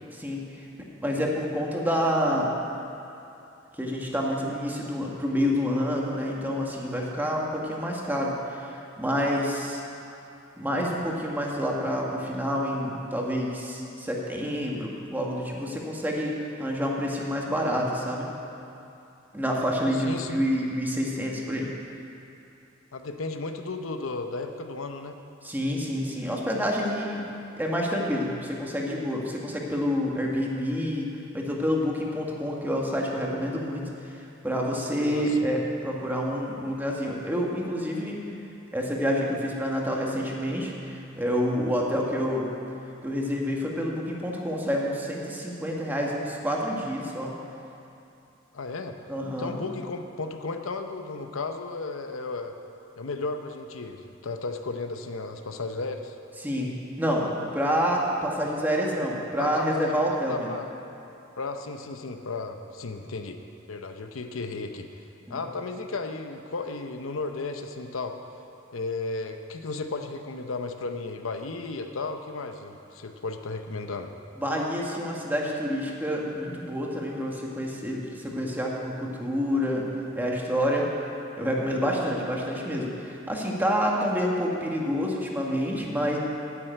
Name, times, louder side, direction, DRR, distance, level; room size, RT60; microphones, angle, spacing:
voice 1, 0.1-0.7 1.0-2.5 3.8-9.8 10.6-18.3 19.3-21.7 25.4-31.1 31.3-33.8 34.1-38.2 38.7-42.5 43.0-47.3 49.1-49.6 56.4-56.7 57.0-60.5 65.3-65.4 74.3-79.9 80.1-80.9 81.4-86.2, equal, 10° right, -2 dB, 1.5 m, -28 dB
voice 2, 20.0-20.4 22.9-25.2 35.1-35.5 48.5-49.0 49.4-52.5 53.0-56.2 59.4-60.0 60.3-60.7 61.4-63.4 63.7-64.9 65.3-68.2 68.7-74.1, left 3 dB, 80° left, 6 dB, 0.8 m, -34 dB
9.9 x 7.9 x 9.0 m, 2.8 s
head